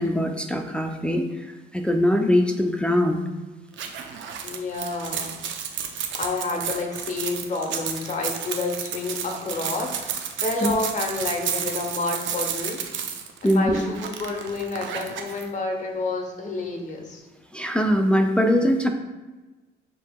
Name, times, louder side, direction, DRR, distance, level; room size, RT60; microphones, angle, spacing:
voice 1, 0.0-1.5 1.7-3.2 10.6-10.7 13.4-13.8 17.5-18.9, equal, 5° left, 3 dB, 0.3 m, -22 dB
sound 1, 3.7-15.4, right 8 dB, 70° right, 0.5 m, -32 dB
voice 2, 4.4-5.3 6.1-12.8 13.4-17.2, left 3 dB, 40° left, 1 dB, 0.9 m, -29 dB
6.5 x 2.8 x 2.2 m, 1.2 s
cardioid pair, 90°, 20 cm